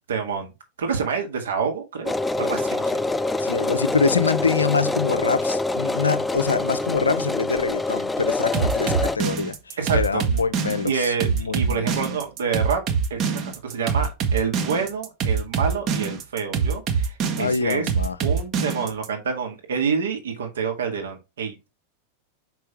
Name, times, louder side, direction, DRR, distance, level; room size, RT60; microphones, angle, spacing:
voice 1, 0.1-0.5 0.8-3.0 9.8-10.2 10.8-12.8 13.1-17.9 18.2-21.7, right 6 dB, 65° right, 2.0 m, -27 dB
sound 1, 2.1-9.2, left 2 dB, 10° left, 0.3 m, -25 dB
voice 2, 3.4-11.8 17.4-18.2, left 5 dB, 75° left, 0.6 m, -25 dB
sound 2, 8.5-19.1, right 6 dB, 35° right, 1.2 m, -24 dB
6.0 x 5.6 x 3.3 m
figure-of-eight pair, 90°, 0 cm